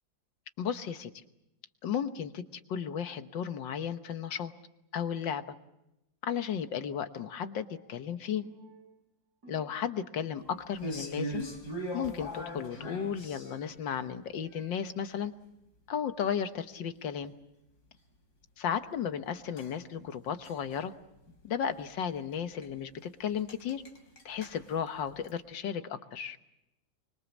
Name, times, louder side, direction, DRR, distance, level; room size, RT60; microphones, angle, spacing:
voice 1, 0.6-1.1 1.8-2.4 2.7-4.5 4.9-5.4 6.2-8.5 9.5-11.4 11.9-15.3 15.9-17.3 18.6-20.9 21.4-23.8 24.3-26.4, left 8 dB, 75° left, 10 dB, 1.8 m, -34 dB
Percussion, 7.4-8.1 8.4-10.2 10.4-11.1 11.4-11.9 12.4-14.0 14.4-15.1, right 1 dB, 55° right, 5.5 m, -58 dB
sound 1, 10.7-13.7 19.6-20.8 21.1-21.4 21.6-21.8 22.3-22.4 22.6-22.7 23.0-23.1 23.4-25.4, right 1 dB, 55° left, 4.2 m, -40 dB
25.0 x 24.5 x 7.2 m, 0.88 s
omnidirectional pair, 2.0 m